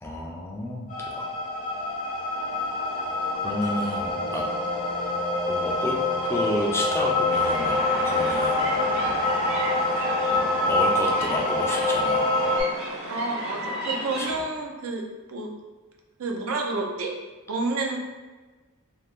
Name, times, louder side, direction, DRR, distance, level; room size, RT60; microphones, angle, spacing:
voice 1, 0.0-1.3 3.4-4.6 5.5-6.0 6.2-7.8 8.0-8.7 9.0-9.2 9.9-10.4 10.7-12.3 14.2-14.3, equal, 10° left, -1 dB, 0.3 m, -31 dB
sound 1, 0.9-12.6, left 2 dB, 40° left, 0.7 m, -25 dB
sound 2, 7.3-14.4, equal, 55° right, 0.8 m, -33 dB
voice 2, 13.1-15.0 15.3-15.5 16.2-17.1 17.5-18.0, right 3 dB, 80° right, 1 dB, 0.5 m, -29 dB
2.5 x 2.5 x 3.4 m, 1.3 s
head